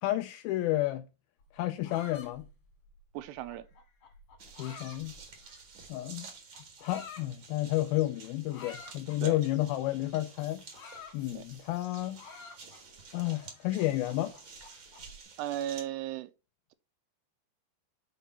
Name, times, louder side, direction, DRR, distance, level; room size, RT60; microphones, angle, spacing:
voice 1, 0.0-1.1 1.5-2.5 4.6-5.2 5.9-6.3 6.8-10.6 11.1-12.2 13.1-14.3, left 15 dB, 80° left, 2.2 m, -31 dB
sound 1, 1.4-5.8 6.5-7.3 8.5-9.2 10.4-11.8 12.2-13.0 13.5-15.1, left 5 dB, 50° left, 2.9 m, -50 dB
voice 2, 3.1-3.7 9.2-9.4 11.3-11.4 15.4-16.3, right 12 dB, 85° right, 2.7 m, -36 dB
sound 2, 4.4-15.8, right 5 dB, 50° right, 1.4 m, -51 dB
6.9 x 5.0 x 5.4 m
omnidirectional pair, 4.8 m